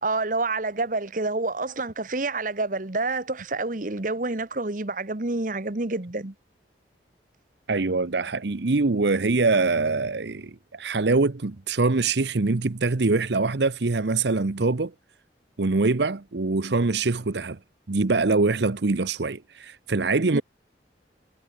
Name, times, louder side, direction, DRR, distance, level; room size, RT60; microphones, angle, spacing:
voice 1, 0.0-6.3 20.3-20.4, right 3 dB, 45° right, 1.4 m, -28 dB
voice 2, 7.7-14.9 15.6-17.6 17.9-20.4, right 3 dB, 75° right, 0.8 m, -24 dB
head